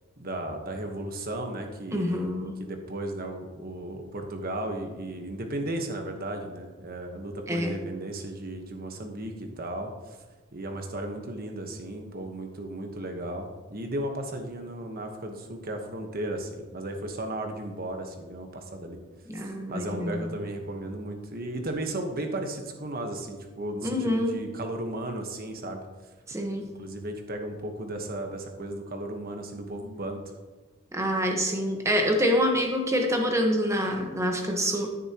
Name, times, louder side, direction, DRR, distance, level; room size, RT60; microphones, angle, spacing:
voice 1, 0.2-2.3 2.6-10.2 10.5-19.0 19.3-19.4 19.7-25.8 26.8-30.2, right 1 dB, 45° right, 4 dB, 1.2 m, -35 dB
voice 2, 1.9-2.5 7.5-7.8 19.3-20.3 23.8-24.4 26.3-26.6 30.9-34.9, equal, 15° right, 2 dB, 1.2 m, -26 dB
13.5 x 6.7 x 3.0 m, 1.3 s
head